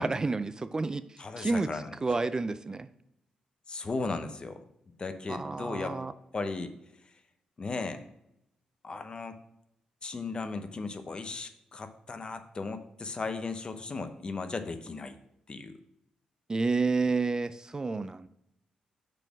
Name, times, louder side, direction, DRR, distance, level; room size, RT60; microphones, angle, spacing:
voice 1, 0.0-1.7 2.0-2.9 5.3-6.1 16.5-18.3, right 3 dB, 30° right, 13 dB, 0.4 m, -30 dB
voice 2, 1.2-1.9 3.7-4.6 5.0-6.0 6.3-6.8 7.0-7.2 7.6-8.0 8.8-9.4 10.0-15.2 15.5-15.8, left 3 dB, 40° left, 9 dB, 0.8 m, -36 dB
6.6 x 4.1 x 6.1 m, 0.82 s
cardioid pair, 70°, 3 cm